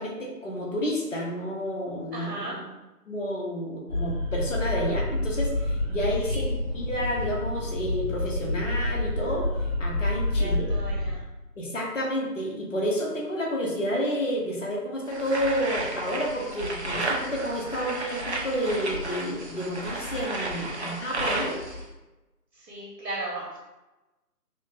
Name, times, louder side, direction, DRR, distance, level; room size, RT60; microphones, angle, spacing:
voice 1, 0.0-2.6 3.1-9.5 9.8-10.7 11.6-21.6, equal, 50° left, -2 dB, 1.0 m, -30 dB
voice 2, 2.1-2.6 6.2-6.5 10.3-11.2 20.7-21.0 22.5-23.6, right 2 dB, 80° right, -6 dB, 1.4 m, -37 dB
sound 1, 3.9-11.1, left 1 dB, 25° right, 0.9 m, -28 dB
sound 2, 15.1-21.8, right 2 dB, 45° right, 0.6 m, -32 dB
4.3 x 2.0 x 3.9 m, 1.1 s
figure-of-eight pair, 160°, 47 cm